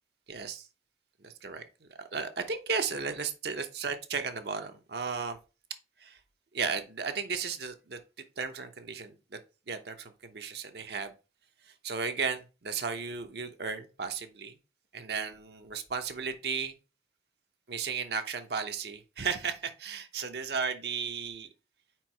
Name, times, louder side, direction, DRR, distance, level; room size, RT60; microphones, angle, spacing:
voice 1, 0.3-0.7 1.2-5.4 6.0-6.2 6.5-8.0 8.4-9.4 9.7-11.1 11.8-14.6 14.9-16.7 17.7-21.5, right 5 dB, 65° right, 6 dB, 0.8 m, -35 dB
4.6 x 4.6 x 4.5 m, 0.31 s
head